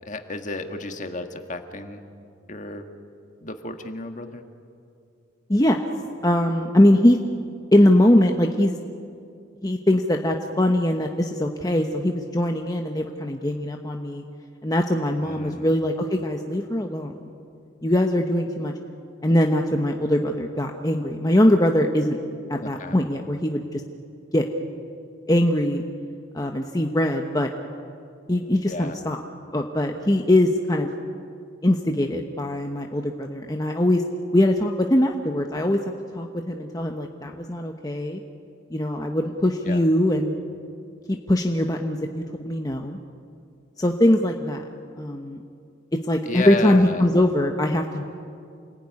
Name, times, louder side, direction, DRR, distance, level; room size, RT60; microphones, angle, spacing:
voice 1, 0.0-2.0 2.5-2.8 3.4-4.4 15.2-15.7 22.6-23.0 28.7-29.0 39.7-39.8 46.2-47.1, left 2 dB, 40° left, 6 dB, 1.8 m, -32 dB
voice 2, 6.2-7.2 7.7-8.7 9.6-14.2 14.6-17.1 17.8-18.7 19.2-22.2 22.5-23.8 24.3-24.4 25.3-25.8 26.3-27.5 28.3-29.2 29.5-30.9 31.6-34.0 34.3-35.8 36.1-38.2 38.7-40.3 41.1-43.0 43.8-44.7 45.0-45.4 46.1-48.1, left 1 dB, 20° left, 3 dB, 1.1 m, -21 dB
28.0 x 20.0 x 9.8 m, 2.5 s
head